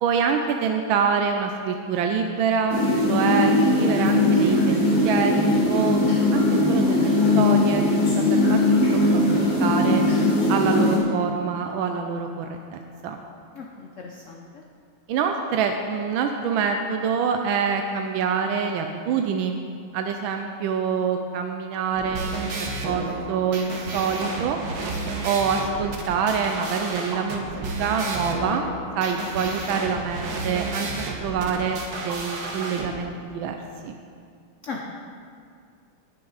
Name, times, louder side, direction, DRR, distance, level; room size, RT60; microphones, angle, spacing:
voice 1, 0.0-6.0 6.3-10.0 10.5-13.2 15.1-19.6 19.9-24.6 25.2-28.6 29.0-30.9 31.2-33.6 33.8-34.0, right 6 dB, 75° right, 4 dB, 1.3 m, -26 dB
sound 1, 2.7-11.0, left 2 dB, 80° left, 3.9 m, -20 dB
voice 2, 13.5-14.6 34.6-35.0, left 4 dB, 60° left, 0 dB, 0.8 m, -37 dB
sound 2, 21.9-32.9, right 3 dB, 55° right, 1.5 m, -31 dB
19.0 x 6.8 x 4.0 m, 2.3 s
omnidirectional pair, 2.4 m